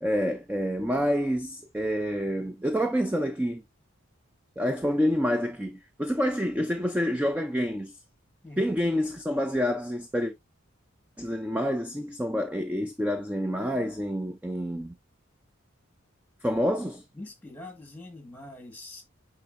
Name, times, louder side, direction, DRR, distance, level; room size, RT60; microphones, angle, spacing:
voice 1, 0.0-3.6 4.6-7.9 8.6-10.3 11.2-14.9 16.4-17.0, equal, 5° right, 0.5 m, -28 dB
voice 2, 17.1-19.0, left 2 dB, 10° left, 1.6 m, -43 dB
9.5 x 3.9 x 2.5 m
head